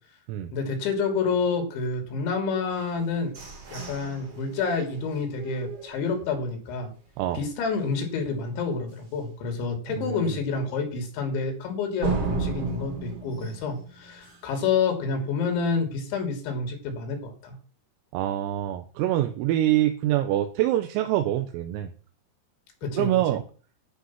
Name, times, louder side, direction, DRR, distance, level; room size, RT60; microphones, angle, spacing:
voice 1, 0.5-3.3 3.7-6.9 7.3-17.6 22.8-23.1, left 4 dB, 65° left, 4 dB, 5.1 m, -28 dB
sound 1, 2.7-6.6 7.1-7.2 7.5-7.9 8.3-8.4 8.9-9.0 12.0-14.7, right 4 dB, 40° right, 2.6 m, -35 dB
voice 2, 10.0-10.4 18.1-21.9 23.0-23.4, right 13 dB, 85° right, 7 dB, 3.6 m, -25 dB
11.0 x 8.4 x 5.8 m, 0.40 s
omnidirectional pair, 5.9 m